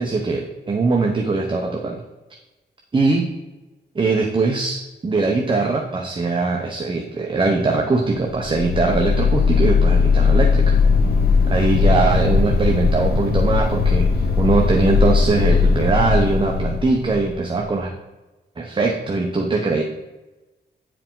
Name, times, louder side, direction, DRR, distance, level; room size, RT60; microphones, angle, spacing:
voice 1, 0.0-2.0 2.9-3.3 4.0-10.8 11.5-17.9 18.6-19.8, right 3 dB, 25° right, 1 dB, 0.6 m, -21 dB
sound 1, 8.2-17.6, left 4 dB, 60° left, 1.0 m, -18 dB
9.1 x 4.7 x 3.7 m, 1.1 s
wide cardioid pair, 180°, 18 cm